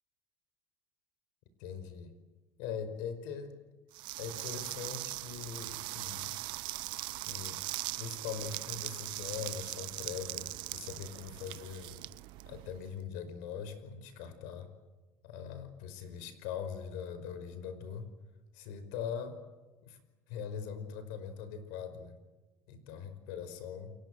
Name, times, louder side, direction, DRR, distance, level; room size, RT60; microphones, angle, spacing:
voice 1, 1.6-2.1 2.6-3.5 4.2-6.4 7.2-7.6 8.0-12.1 12.5-14.7 15.2-18.1 18.5-19.4 19.8-20.0 20.3-22.2 22.7-23.9, left 7 dB, 80° left, 11 dB, 5.1 m, -41 dB
sound 1, 3.9-12.9, right 20 dB, 65° right, 0.8 m, -40 dB
29.0 x 23.5 x 7.8 m, 1.2 s
supercardioid pair, 115°, 9 cm